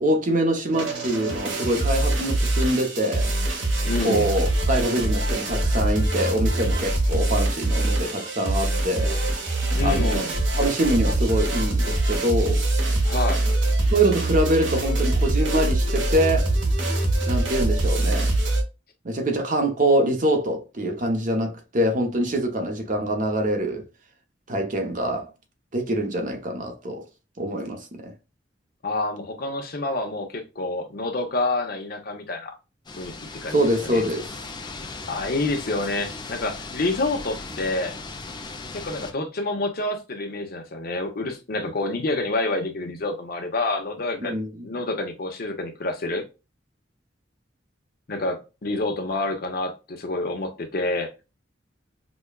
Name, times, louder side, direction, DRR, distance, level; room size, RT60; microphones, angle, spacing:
voice 1, 0.0-3.3 4.0-9.2 9.8-10.3 10.6-12.6 13.9-16.5 17.3-18.3 19.0-23.9 24.5-25.3 25.7-27.0 27.4-28.1 33.5-34.3 44.2-44.5, right 1 dB, 45° right, 0.8 m, -24 dB
sound 1, 0.7-18.6, right 1 dB, 80° right, 1.0 m, -23 dB
voice 2, 3.8-4.3 9.7-10.3 13.0-13.4 28.8-32.5 33.0-34.0 35.1-37.9 38.7-44.4 44.6-46.2 48.1-51.1, left 2 dB, 55° left, 0.8 m, -28 dB
sound 2, 32.9-39.1, left 3 dB, 25° left, 0.5 m, -37 dB
5.0 x 2.2 x 2.3 m
head